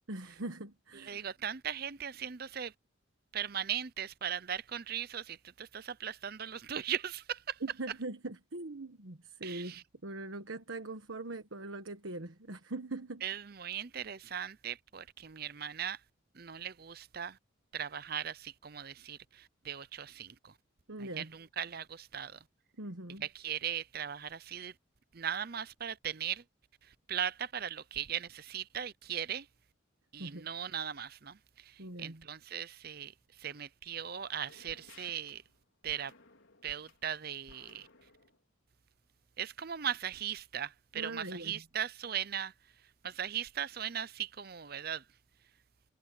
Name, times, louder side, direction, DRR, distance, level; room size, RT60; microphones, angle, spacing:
voice 1, 0.1-1.3 7.6-13.2 20.9-21.3 22.8-23.2 30.2-30.4 31.8-32.2 40.9-41.5, right 2 dB, 75° right, 1.4 m, -41 dB
voice 2, 1.0-2.7 3.3-7.6 9.4-9.8 13.2-16.0 16.3-17.4 17.7-20.5 21.0-22.4 23.2-24.7 25.1-26.4 26.8-29.5 30.1-33.1 33.4-35.4 35.8-36.1 36.6-37.9 39.4-42.5 43.0-45.0, right 9 dB, 50° right, 0.6 m, -38 dB
sound 1, 34.2-38.4, left 3 dB, 80° left, 4.5 m, -60 dB
head